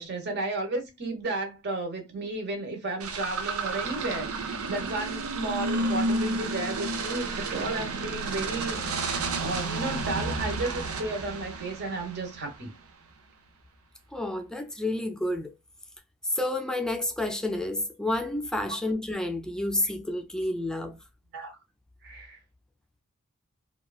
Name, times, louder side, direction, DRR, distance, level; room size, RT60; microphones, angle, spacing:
voice 1, 0.0-12.7 21.3-21.6 22.0-22.4, right 2 dB, 50° right, 1.0 m, -33 dB
sound 1, 3.0-12.5, right 3 dB, 85° right, 0.6 m, -31 dB
voice 2, 14.1-15.5 16.3-21.0, left 1 dB, 5° left, 0.4 m, -30 dB
3.0 x 2.3 x 2.3 m
head